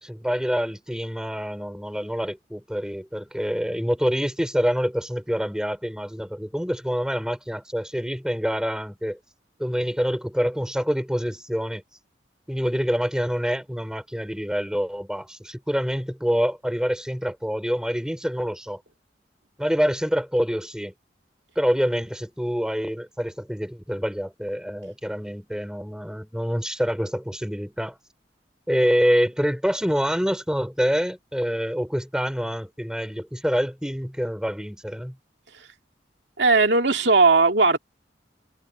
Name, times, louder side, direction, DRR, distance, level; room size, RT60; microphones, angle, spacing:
voice 1, 0.0-9.2 9.6-11.8 12.5-18.8 19.6-20.9 21.6-28.0 28.7-35.2, equal, 5° right, 4.6 m, -26 dB
voice 2, 36.4-37.8, right 3 dB, 80° right, 2.4 m, -17 dB
head